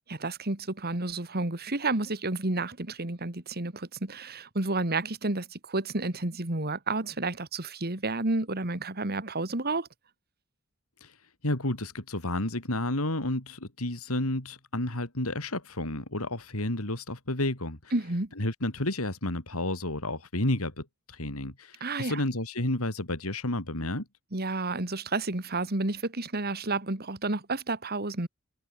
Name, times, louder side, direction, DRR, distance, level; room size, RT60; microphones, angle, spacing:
voice 1, 0.1-9.9 17.9-18.3 21.8-22.2 24.3-28.3, right 2 dB, 45° right, 2.4 m, -31 dB
voice 2, 11.4-17.9 18.4-24.0, left 1 dB, 90° left, 4.4 m, -31 dB
head